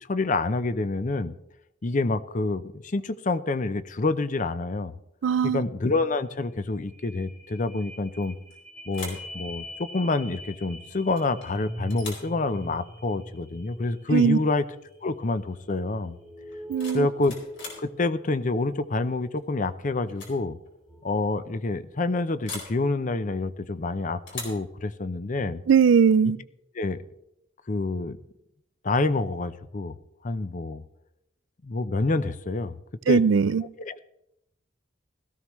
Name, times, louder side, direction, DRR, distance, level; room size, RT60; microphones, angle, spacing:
voice 1, 0.1-1.3 1.8-4.9 5.4-8.4 8.9-14.6 15.0-16.2 16.9-17.3 17.8-20.6 21.0-25.6 26.7-27.0 27.7-28.2 28.8-30.0 30.2-30.8 31.6-32.7 33.1-33.2 33.8-34.0, left 3 dB, 40° left, 13 dB, 0.6 m, -27 dB
voice 2, 5.2-5.6 14.1-14.4 16.7-17.1 25.7-26.4 33.1-33.6, right 6 dB, 70° right, 19 dB, 0.4 m, -20 dB
sound 1, 6.5-22.4 22.9-23.0, equal, 20° left, 3.1 m, -44 dB
sound 2, 8.2-8.6 8.9-9.3 11.2-11.5 11.9-12.3 14.2-14.4 14.7-15.0 16.5-17.9 19.4-19.7 20.1-20.4 20.7-20.8 22.4-22.8 24.3-24.7, left 3 dB, 70° left, 4.2 m, -40 dB
16.5 x 14.5 x 3.1 m, 0.82 s
head